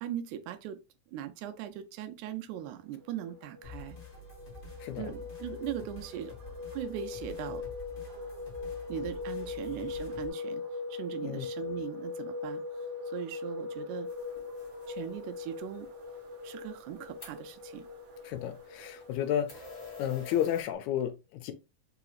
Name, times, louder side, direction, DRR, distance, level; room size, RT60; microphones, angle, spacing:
voice 1, 0.0-0.8 1.1-4.0 5.0-7.7 8.1-8.2 8.9-10.6 10.9-12.6 13.1-14.1 14.9-15.9 16.4-17.9, right 11 dB, 85° right, 2.0 m, -40 dB
sound 1, 3.0-20.7, left 4 dB, 65° right, 1.8 m, -41 dB
sound 2, 3.6-10.3, left 2 dB, 50° left, 0.6 m, -48 dB
sound 3, 14.0-20.6, left 2 dB, 20° left, 1.0 m, -52 dB
voice 2, 18.2-19.7 20.0-21.5, left 10 dB, 80° left, 1.9 m, -32 dB
4.9 x 2.9 x 2.4 m
omnidirectional pair, 3.5 m